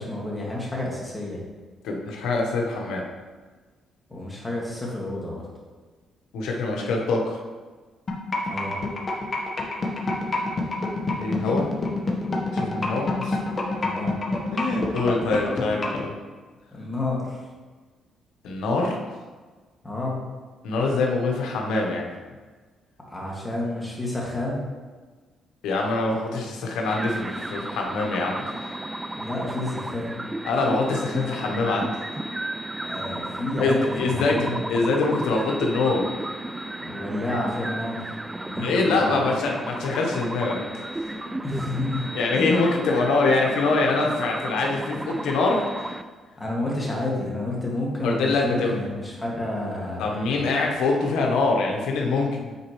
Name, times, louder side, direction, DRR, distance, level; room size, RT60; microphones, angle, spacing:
voice 1, 0.0-1.4 4.1-5.5 8.4-8.8 13.7-14.1 16.7-17.5 19.8-20.2 23.1-24.6 29.2-30.1 32.8-34.8 36.8-38.2 38.5-39.3 41.3-42.1 46.4-50.4, left 2 dB, 15° left, -4 dB, 2.0 m, -30 dB
voice 2, 1.8-3.1 6.3-7.4 11.2-11.7 12.5-13.4 14.5-16.1 18.4-19.0 20.6-22.1 25.6-28.7 30.4-32.0 33.6-36.1 38.6-40.8 42.1-46.0 48.0-48.7 50.0-52.5, left 3 dB, 85° left, 0 dB, 1.1 m, -24 dB
sound 1, 8.1-16.0, left 3 dB, 35° left, 1.2 m, -26 dB
sound 2, 26.8-46.0, right 1 dB, 15° right, 0.4 m, -33 dB
8.4 x 4.3 x 3.2 m, 1.4 s
cardioid pair, 90°, 0 cm